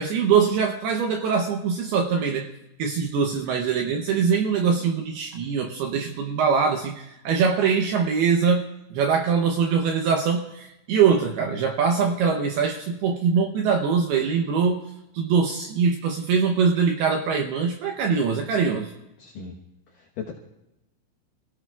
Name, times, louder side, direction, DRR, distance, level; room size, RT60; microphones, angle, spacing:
voice 1, 0.0-2.5 2.8-8.6 8.9-14.8 15.1-18.9, right 6 dB, 80° right, 3 dB, 2.3 m, -23 dB
voice 2, 19.2-19.6 19.9-20.3, left 6 dB, 90° left, 1 dB, 1.9 m, -37 dB
28.5 x 17.0 x 2.3 m, 0.90 s
omnidirectional pair, 5.6 m